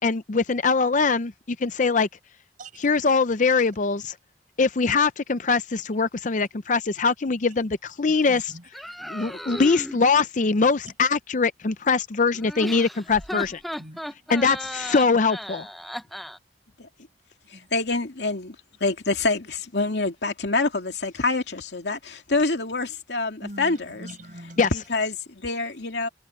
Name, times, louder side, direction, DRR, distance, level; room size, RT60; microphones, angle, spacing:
voice 1, 0.0-2.1 2.8-4.1 4.6-8.5 9.1-13.6 14.3-15.7 24.6-24.7, left 4 dB, 45° left, 0.6 m, -22 dB
voice 2, 2.6-2.9 8.1-8.7 10.9-11.0 13.3-13.4 13.8-14.3 17.5-17.7 23.4-24.7, right 1 dB, 45° right, 6.0 m, -43 dB
sound 1, 8.7-10.0 12.3-16.4, equal, ahead, 0.6 m, -35 dB
voice 3, 17.5-24.1 24.7-26.1, left 3 dB, 70° left, 2.5 m, -26 dB
head